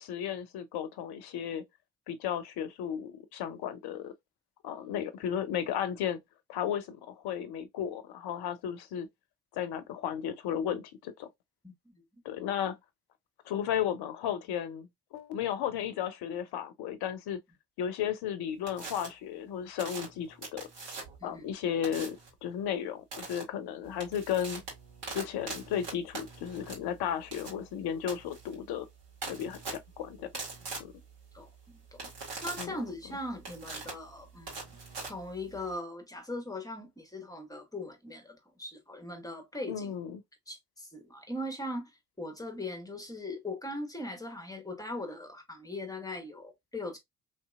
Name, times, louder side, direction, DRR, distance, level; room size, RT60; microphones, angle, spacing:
voice 1, 0.0-1.6 2.1-4.1 4.6-6.2 6.5-9.1 9.5-11.3 12.2-12.8 13.4-17.4 17.8-20.7 21.2-24.6 25.1-28.9 29.3-30.3 30.8-30.9 32.6-32.8 39.7-40.2, left 9 dB, 55° left, 0.7 m, -34 dB
voice 2, 11.6-12.0 21.2-21.5 30.2-30.3 31.3-32.1 32.4-34.8 35.0-39.9 40.5-47.0, left 1 dB, 10° left, 1.2 m, -40 dB
sound 1, 18.7-19.1 19.8-21.3 21.8-22.3 23.1-23.4 23.8-35.7, right 3 dB, 60° right, 1.9 m, -42 dB
3.2 x 2.7 x 2.4 m
figure-of-eight pair, 45°, 46 cm